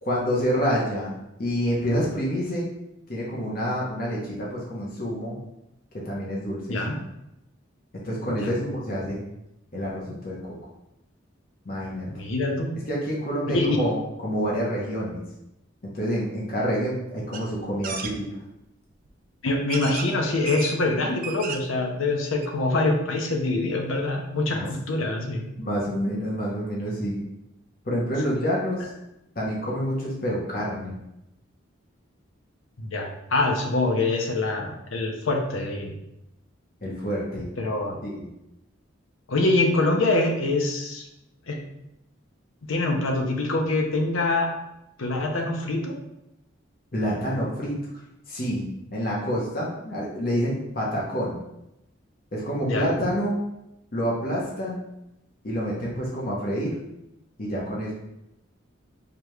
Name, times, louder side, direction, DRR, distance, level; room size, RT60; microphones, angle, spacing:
voice 1, 0.0-2.7 3.1-5.4 6.0-7.0 8.0-9.2 9.7-10.5 11.6-12.1 12.9-15.2 15.8-18.2 24.5-24.7 25.6-27.2 27.8-28.9 29.3-31.0 36.8-37.5 38.0-38.3 46.9-47.8 48.3-51.4 52.3-53.4 53.9-54.8 55.4-56.8 57.4-57.9, equal, 45° left, -5 dB, 0.9 m, -28 dB
voice 2, 12.1-12.7 13.5-13.8 19.4-24.6 24.9-25.4 32.8-35.9 37.6-38.0 39.3-41.1 41.5-41.6 42.7-44.5 45.0-45.9 52.6-52.9, left 2 dB, 85° left, 2 dB, 0.7 m, -25 dB
sound 1, 17.3-17.4 17.8-18.1 19.1-19.2 19.7-20.1 20.5-20.8 21.1-21.8 22.1-22.2 22.4-22.5, right 6 dB, 45° right, 0.3 m, -34 dB
4.8 x 2.4 x 3.1 m, 0.88 s
head